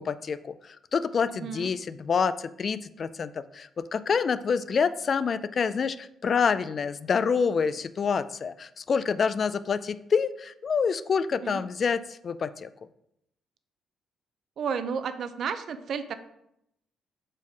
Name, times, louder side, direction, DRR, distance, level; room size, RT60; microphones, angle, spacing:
voice 1, 0.0-12.7, left 6 dB, 45° left, 14 dB, 0.3 m, -27 dB
voice 2, 1.3-1.7 11.4-11.6 14.6-16.1, right 6 dB, 65° right, 11 dB, 0.5 m, -32 dB
5.4 x 4.4 x 4.8 m, 0.80 s
cardioid pair, 90°, 0 cm